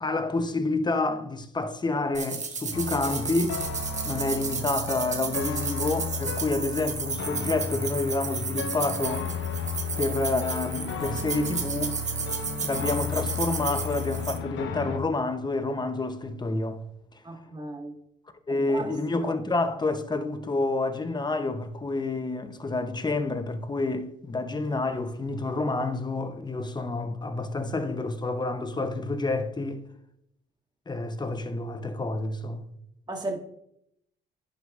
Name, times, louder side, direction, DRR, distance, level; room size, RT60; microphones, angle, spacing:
voice 1, 0.0-3.6 4.0-9.3 10.0-12.0 12.6-16.8 18.5-29.8 30.9-32.7, left 2 dB, 20° left, 0.8 m, -29 dB
sound 1, 2.1-14.4, right 5 dB, 35° right, 1.0 m, -33 dB
sound 2, 2.7-15.0, left 5 dB, 75° left, 0.8 m, -34 dB
voice 2, 17.2-18.0 18.5-18.9 19.2-19.4 33.1-33.4, right 2 dB, 20° right, 1.7 m, -35 dB
10.5 x 6.3 x 2.5 m
cardioid pair, 90°, 20 cm